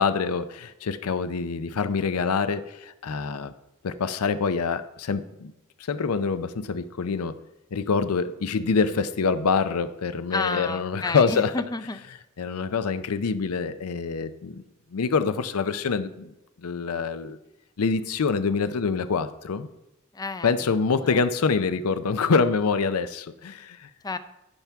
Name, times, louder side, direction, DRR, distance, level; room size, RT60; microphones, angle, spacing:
voice 1, 0.0-3.5 3.8-5.5 5.9-7.3 7.7-11.5 12.4-14.6 14.9-16.3 16.6-17.4 17.8-19.7 20.4-23.9, left 5 dB, 70° left, 12 dB, 0.5 m, -25 dB
voice 2, 10.3-12.0 20.1-21.2 24.0-24.2, left 3 dB, 15° left, 12 dB, 0.5 m, -31 dB
16.0 x 5.9 x 3.5 m, 0.93 s
head